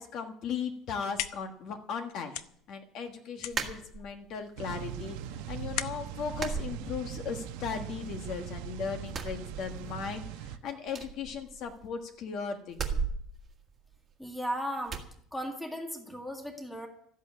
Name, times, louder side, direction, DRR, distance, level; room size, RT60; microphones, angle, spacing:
voice 1, 0.0-2.3 2.7-13.0, left 6 dB, 45° left, 5 dB, 1.4 m, -37 dB
sound 1, 0.7-7.6, left 12 dB, 65° left, 0.8 m, -42 dB
sound 2, 3.5-4.4 4.8-5.5 5.7-5.9 6.3-7.5 7.8-8.6 9.0-10.2 10.4-10.5 10.9-12.0 12.7-14.4 14.9-15.1, right 5 dB, 20° right, 1.6 m, -37 dB
sound 3, 4.6-10.6, right 9 dB, 90° right, 1.0 m, -40 dB
voice 2, 14.2-15.0 15.3-16.9, equal, 5° left, 3 dB, 1.9 m, -36 dB
14.0 x 8.3 x 9.8 m, 0.68 s
cardioid pair, 180°, 0 cm